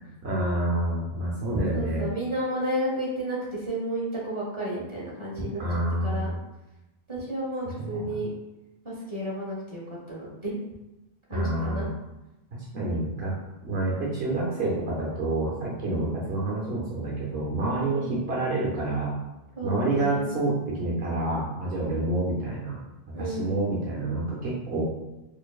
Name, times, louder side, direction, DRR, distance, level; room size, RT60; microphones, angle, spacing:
voice 1, 0.2-2.0 5.6-6.3 7.7-8.0 11.3-11.9 12.5-13.3 13.6-19.1 19.6-22.8 23.2-24.8, right 2 dB, 75° right, -5 dB, 1.0 m, -28 dB
voice 2, 1.7-5.6 6.0-6.3 7.1-8.3 8.8-10.6 11.3-11.9 17.7-18.1 19.6-20.2 23.1-23.6, right 1 dB, 30° right, -6 dB, 1.0 m, -32 dB
4.3 x 2.6 x 2.3 m, 1.0 s
omnidirectional pair, 1.1 m